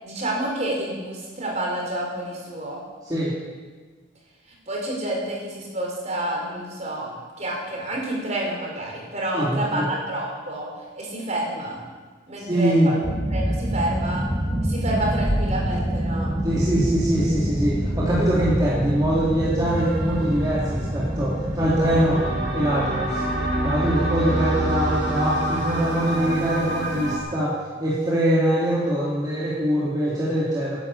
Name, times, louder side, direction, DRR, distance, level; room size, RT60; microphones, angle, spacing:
voice 1, 0.0-2.8 4.5-10.7 10.9-11.8 12.3-13.1 13.3-14.2 14.6-16.4, right 1 dB, 35° right, -2 dB, 4.4 m, -29 dB
voice 2, 9.3-9.9 12.5-12.9 16.4-22.2 22.5-23.2 23.6-30.8, right 1 dB, 20° right, -7 dB, 2.7 m, -23 dB
sound 1, 13.0-22.6, equal, ahead, 4.1 m, -26 dB
sound 2, 19.6-27.2, right 1 dB, 60° right, 4.2 m, -27 dB
12.5 x 10.5 x 8.4 m, 1.4 s
head